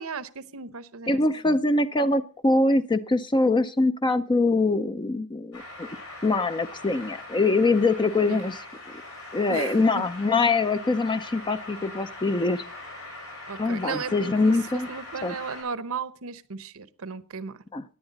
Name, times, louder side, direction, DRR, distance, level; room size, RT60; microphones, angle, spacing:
voice 1, 0.0-1.6 8.3-8.4 9.5-10.0 13.5-17.6, right 5 dB, 70° right, 15 dB, 0.9 m, -36 dB
voice 2, 1.1-5.9 6.2-8.7 9.3-12.6 13.6-14.9 15.2-15.3 17.7-17.8, left 3 dB, 20° left, 10 dB, 0.5 m, -23 dB
sound 1, 5.5-15.6, left 2 dB, 80° left, 7.6 m, -41 dB
17.0 x 10.5 x 4.0 m, 0.37 s
head